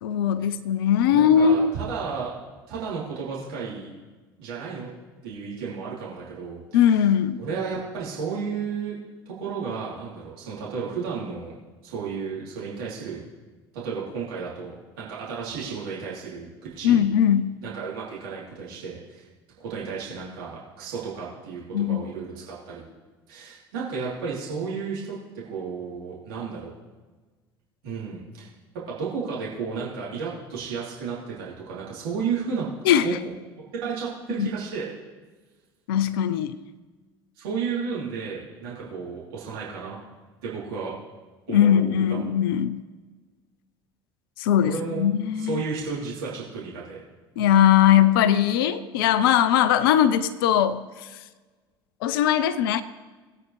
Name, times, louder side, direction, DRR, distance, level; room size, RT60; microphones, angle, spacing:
voice 1, 0.0-1.7 6.7-7.4 16.8-17.6 21.7-22.1 32.8-33.2 34.4-34.5 35.9-36.6 41.5-42.8 44.4-45.6 47.4-51.1 52.0-52.8, left 9 dB, 60° left, 14 dB, 0.6 m, -20 dB
voice 2, 1.1-2.3 2.7-3.9 4.4-4.9 5.2-7.0 7.4-9.0 9.2-11.5 11.8-13.2 13.7-16.5 16.8-17.0 17.6-19.3 19.6-22.8 23.3-25.2 25.5-26.7 27.8-28.5 28.9-32.7 33.0-33.3 33.7-34.9 37.4-40.0 40.4-40.9 41.5-42.3 44.6-45.1 45.3-47.0, right 5 dB, 65° right, -7 dB, 3.3 m, -33 dB
20.5 x 8.7 x 3.3 m, 1.3 s
figure-of-eight pair, 65°, 13 cm